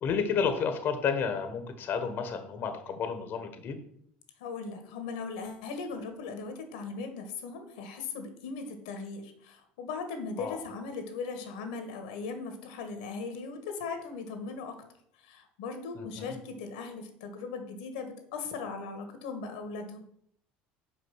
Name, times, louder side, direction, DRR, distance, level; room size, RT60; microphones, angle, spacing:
voice 1, 0.0-3.8 10.4-10.6 16.0-16.3, left 6 dB, 50° left, 7 dB, 1.1 m, -31 dB
voice 2, 4.4-14.8 15.2-20.0, left 4 dB, 85° left, 7 dB, 1.4 m, -38 dB
5.6 x 5.0 x 6.3 m, 0.68 s
supercardioid pair, 90°, 4 cm